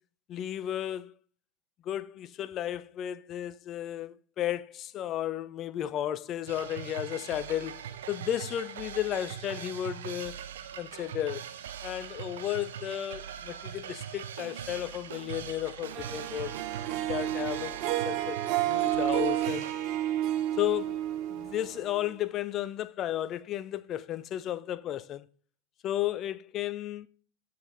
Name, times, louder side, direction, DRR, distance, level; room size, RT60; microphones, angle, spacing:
voice 1, 0.3-1.2 1.8-10.4 10.8-11.4 11.8-16.5 17.1-18.4 18.6-19.7 20.6-21.0 21.3-25.3 25.8-27.1, left 12 dB, 30° left, 0.6 m, -33 dB
sound 1, 6.5-19.7, right 9 dB, 60° right, 1.1 m, -41 dB
Harp, 15.9-22.2, right 13 dB, 40° right, 1.2 m, -31 dB
14.5 x 6.0 x 3.7 m
figure-of-eight pair, 90°, 0 cm